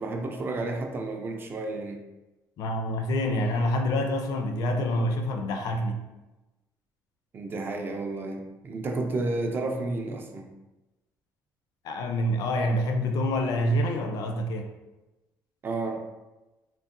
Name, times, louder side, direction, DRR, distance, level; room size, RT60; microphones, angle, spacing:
voice 1, 0.0-2.0 7.3-10.5 15.6-16.0, right 2 dB, 30° right, 3 dB, 0.3 m, -31 dB
voice 2, 2.6-6.0 11.8-14.7, left 1 dB, 65° left, 5 dB, 0.4 m, -27 dB
3.8 x 2.1 x 2.4 m, 1.0 s
cardioid pair, 155°, 7 cm